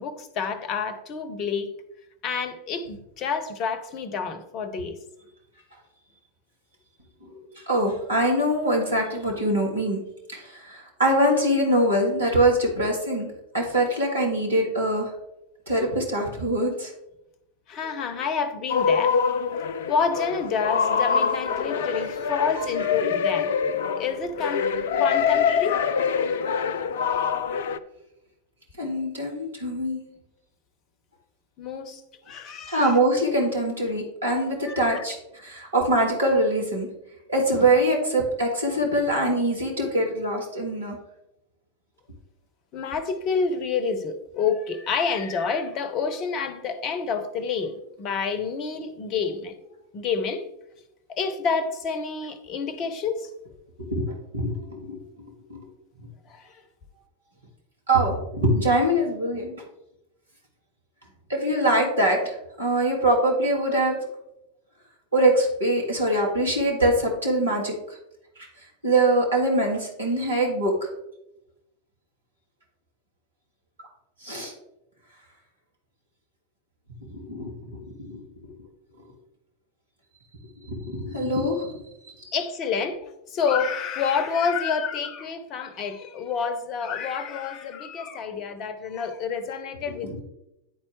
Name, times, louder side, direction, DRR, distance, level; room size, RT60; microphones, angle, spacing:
voice 1, 0.0-1.7 2.2-5.0 17.7-19.2 19.9-23.5 24.0-24.7 25.0-25.8 30.1-30.2 31.6-32.0 32.3-33.0 34.6-35.0 42.7-49.5 49.9-50.4 51.1-53.3 56.3-56.6 82.3-90.2, left 5 dB, 35° left, 0.8 m, -28 dB
voice 2, 7.7-10.0 10.3-13.3 13.5-15.1 15.7-16.9 28.8-30.0 32.7-36.9 37.3-41.0 53.8-55.0 55.5-55.6 57.9-59.5 61.3-64.0 65.1-67.7 68.8-70.7 74.2-74.5 77.1-77.8 78.0-78.1 80.7-81.7, right 1 dB, 75° right, 1.9 m, -23 dB
sound 1, 18.7-27.8, left 6 dB, 55° left, 0.4 m, -25 dB
9.9 x 4.3 x 3.2 m
figure-of-eight pair, 90°, 0 cm